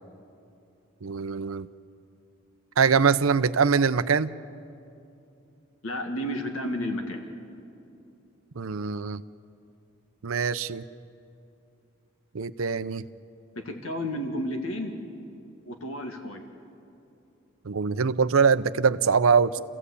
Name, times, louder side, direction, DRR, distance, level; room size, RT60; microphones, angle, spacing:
voice 1, 1.0-1.7 2.8-4.3 8.6-9.2 10.2-10.8 12.3-13.0 17.6-19.6, right 5 dB, 90° right, 14 dB, 0.6 m, -23 dB
voice 2, 5.8-7.2 13.6-15.0 15.6-16.5, left 1 dB, 90° left, 4 dB, 1.9 m, -32 dB
29.0 x 16.0 x 8.3 m, 2.7 s
head